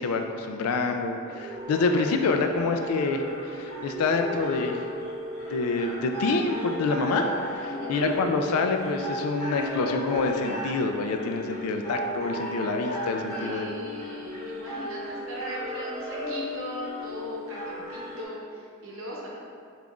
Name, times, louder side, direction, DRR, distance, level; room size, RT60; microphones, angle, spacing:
voice 1, 0.0-4.8 5.5-7.6 7.9-13.7, left 3 dB, 85° left, 5 dB, 0.3 m, -27 dB
sound 1, 1.2-18.2, equal, 15° left, 1.0 m, -35 dB
voice 2, 7.6-8.0 13.3-19.3, equal, 65° right, -4 dB, 0.7 m, -38 dB
5.3 x 2.4 x 2.3 m, 2.3 s
head